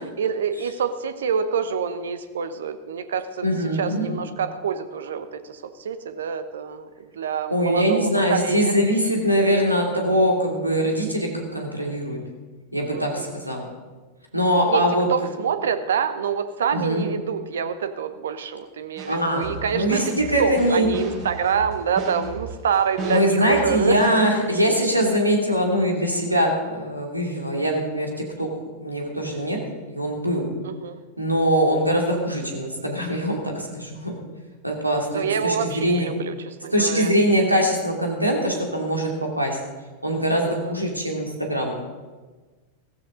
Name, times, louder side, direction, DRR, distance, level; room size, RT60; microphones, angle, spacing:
voice 1, 0.0-3.4 3.8-8.7 12.9-13.3 14.7-14.8 15.1-20.0 20.4-24.0 30.6-31.0 35.1-37.1 40.4-40.8, right 7 dB, 65° right, 11 dB, 1.0 m, -26 dB
voice 2, 3.4-4.1 7.5-12.2 12.7-13.7 14.3-15.1 16.7-17.0 19.1-20.9 23.1-28.1 28.4-28.5 28.8-29.6 29.9-30.4 31.2-34.1 34.6-36.1 36.7-39.6 40.0-42.0, equal, 85° right, 1 dB, 2.7 m, -22 dB
sound 1, 19.0-24.1, right 2 dB, 45° right, 4.6 m, -34 dB
16.0 x 15.0 x 3.9 m, 1.3 s
figure-of-eight pair, 90°, 0 cm